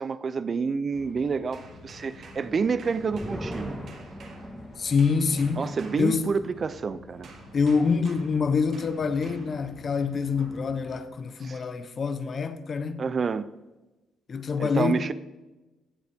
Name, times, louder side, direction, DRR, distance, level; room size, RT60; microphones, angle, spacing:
voice 1, 0.0-3.8 5.6-7.3 11.4-11.6 13.0-13.5 14.6-15.1, right 5 dB, 40° right, 0.5 m, -28 dB
sound 1, 0.9-11.0, left 3 dB, 85° left, 2.0 m, -50 dB
sound 2, 1.4-6.7 7.2-9.7 10.4-10.7, right 3 dB, 65° right, 2.2 m, -48 dB
sound 3, 2.5-9.5 9.8-9.9 10.2-10.7, equal, 5° right, 2.1 m, -43 dB
voice 2, 4.8-5.7 6.0-6.2 7.5-13.0 14.3-15.0, left 5 dB, 45° left, 0.9 m, -26 dB
16.0 x 7.8 x 3.6 m
cardioid pair, 90°, 0 cm